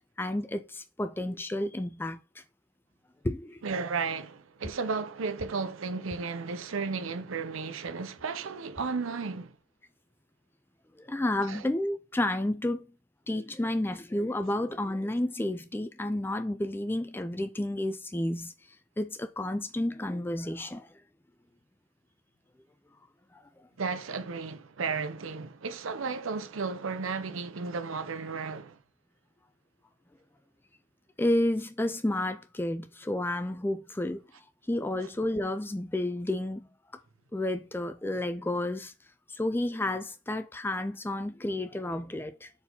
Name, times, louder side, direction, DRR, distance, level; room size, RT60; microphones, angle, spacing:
voice 1, 0.2-2.4 3.2-3.6 11.0-12.9 13.3-18.5 19.0-20.9 23.3-23.4 31.2-34.2 34.7-36.6 37.3-38.9 39.3-42.5, left 1 dB, 10° left, 0.3 m, -31 dB
voice 2, 3.6-9.6 11.5-11.6 23.8-28.8, right 4 dB, 75° right, 0.6 m, -34 dB
4.6 x 4.0 x 5.3 m
head